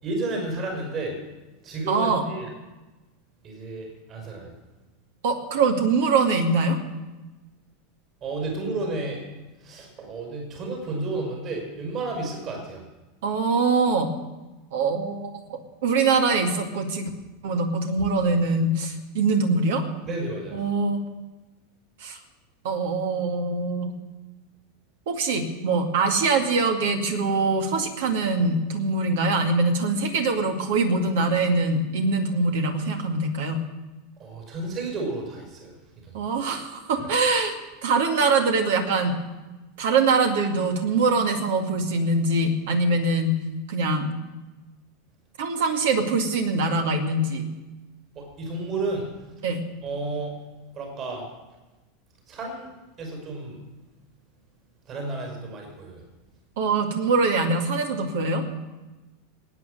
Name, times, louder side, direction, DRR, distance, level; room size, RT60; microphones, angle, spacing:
voice 1, 0.0-1.2 1.6-2.5 3.4-4.5 8.2-9.2 9.6-12.8 20.1-20.6 34.2-35.7 48.1-49.1 49.8-50.4 50.7-51.2 52.3-52.7 53.0-53.6 54.9-56.0, right 2 dB, 40° right, 2 dB, 5.8 m, -31 dB
voice 2, 1.9-2.2 5.2-6.8 13.2-14.1 14.7-17.1 17.4-19.8 20.5-21.0 22.0-22.2 22.6-24.0 25.1-33.6 36.1-37.6 37.8-39.2 39.8-43.4 43.7-44.2 45.4-47.4 49.4-49.6 56.6-58.4, right 3 dB, 60° right, 4 dB, 2.2 m, -23 dB
19.0 x 9.6 x 6.7 m, 1.1 s
figure-of-eight pair, 85°, 0 cm